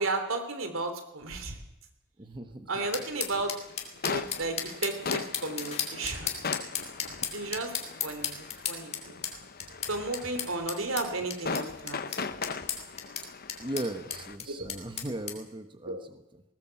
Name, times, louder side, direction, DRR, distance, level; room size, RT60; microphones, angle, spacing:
voice 1, 0.0-1.6 2.7-3.6 3.9-6.4 7.3-7.7 8.0-9.2 9.9-12.3 14.5-14.7 15.8-16.0, right 3 dB, 80° right, 7 dB, 3.2 m, -34 dB
voice 2, 2.2-2.7 9.6-9.7 13.6-16.4, right 1 dB, 25° right, 7 dB, 1.1 m, -38 dB
sound 1, 2.7-14.3, left 5 dB, 50° left, 1.0 m, -39 dB
sound 2, 2.9-15.4, left 7 dB, 30° left, 2.9 m, -35 dB
19.5 x 18.0 x 7.7 m, 0.88 s
head